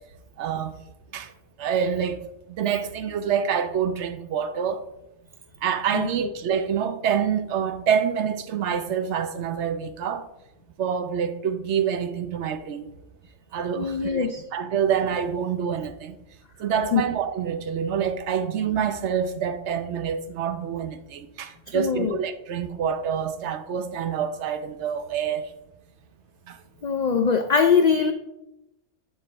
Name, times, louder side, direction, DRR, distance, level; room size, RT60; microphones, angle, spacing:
voice 1, 0.4-0.7 1.1-1.3 1.6-4.8 5.6-10.3 10.8-12.9 13.5-16.2 16.6-25.5 26.5-26.6, right 7 dB, 80° right, 1.0 m, -27 dB
voice 2, 13.8-14.4 16.9-17.0 21.7-22.2 26.8-28.1, left 6 dB, 50° left, 0.5 m, -22 dB
11.5 x 3.9 x 5.3 m
omnidirectional pair, 1.2 m